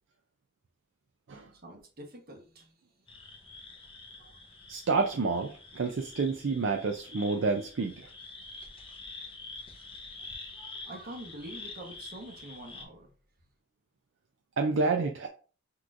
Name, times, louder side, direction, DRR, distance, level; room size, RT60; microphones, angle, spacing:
voice 1, 1.5-3.0 10.8-13.1, right 1 dB, 45° right, 1.1 m, -46 dB
sound 1, 3.1-12.8, left 3 dB, 25° left, 0.8 m, -47 dB
voice 2, 4.7-8.1 14.6-15.3, right 4 dB, 65° right, 0.5 m, -29 dB
6.0 x 3.1 x 2.5 m
head